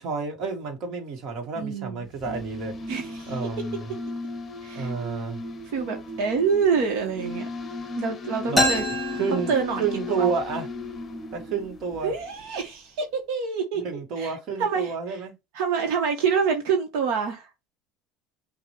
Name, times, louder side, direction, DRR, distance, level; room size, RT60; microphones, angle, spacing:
voice 1, 0.0-2.7 3.3-3.9 4.7-5.4 8.5-8.7 9.2-9.5 9.8-10.7 11.3-12.1 13.7-15.3, right 5 dB, 50° right, 1.6 m, -30 dB
voice 2, 1.5-2.1 2.9-3.4 4.6-4.9 5.7-7.5 8.0-8.9 9.3-10.3 12.0-13.8 14.2-15.2 15.5-17.5, right 6 dB, 70° right, 1.3 m, -27 dB
sound 1, 2.0-12.5, left 3 dB, 25° left, 0.9 m, -36 dB
sound 2, 8.6-10.3, left 1 dB, 5° left, 2.6 m, -26 dB
5.8 x 2.6 x 3.2 m
cardioid pair, 140°, 0 cm